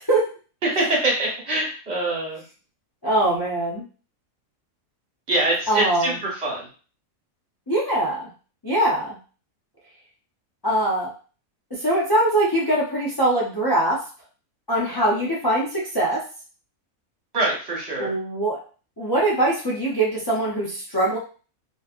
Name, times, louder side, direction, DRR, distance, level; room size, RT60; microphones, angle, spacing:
voice 1, 0.6-2.4 5.3-6.1 6.4-6.6 17.3-18.1, right 2 dB, 50° right, -4 dB, 1.5 m, -23 dB
voice 2, 3.0-3.8 5.7-6.2 7.7-8.2 8.6-9.2 10.6-11.1 11.8-14.0 14.7-16.2 18.0-18.6 19.0-21.2, right 1 dB, 25° left, -6 dB, 0.5 m, -22 dB
3.0 x 2.8 x 2.5 m, 0.37 s
omnidirectional pair, 1.5 m